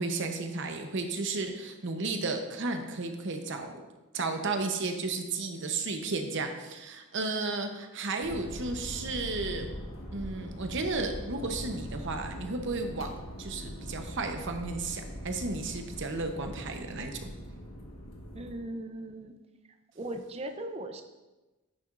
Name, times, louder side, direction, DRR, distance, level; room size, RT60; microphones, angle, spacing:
voice 1, 0.0-3.7 4.1-9.7 10.1-13.1 13.4-17.3, right 3 dB, 55° right, 5 dB, 0.8 m, -33 dB
sound 1, 8.2-18.6, equal, 65° left, 1.4 m, -42 dB
voice 2, 18.3-19.3 19.9-21.0, right 1 dB, 30° right, 6 dB, 0.5 m, -38 dB
10.5 x 6.9 x 2.5 m, 1.1 s
head